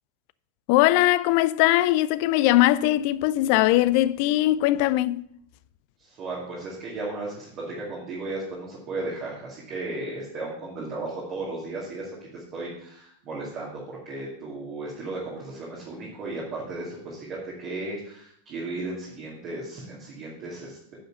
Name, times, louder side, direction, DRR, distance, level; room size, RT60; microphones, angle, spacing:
voice 1, 0.7-5.3, left 16 dB, 45° left, 0.3 m, -20 dB
voice 2, 6.0-21.0, right 2 dB, 35° right, 2.4 m, -35 dB
9.5 x 5.4 x 5.5 m
figure-of-eight pair, 90°, 0 cm